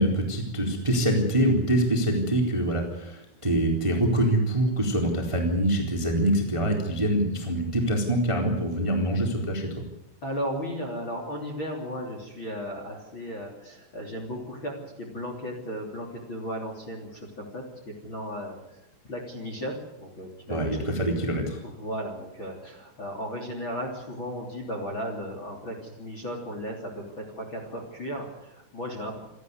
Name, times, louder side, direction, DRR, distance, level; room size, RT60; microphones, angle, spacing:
voice 1, 0.0-9.7 20.5-21.6, right 1 dB, 10° right, 2 dB, 2.7 m, -25 dB
voice 2, 10.2-20.7 21.6-29.2, equal, 30° left, 2 dB, 3.1 m, -35 dB
28.0 x 12.5 x 9.6 m, 0.87 s
omnidirectional pair, 5.7 m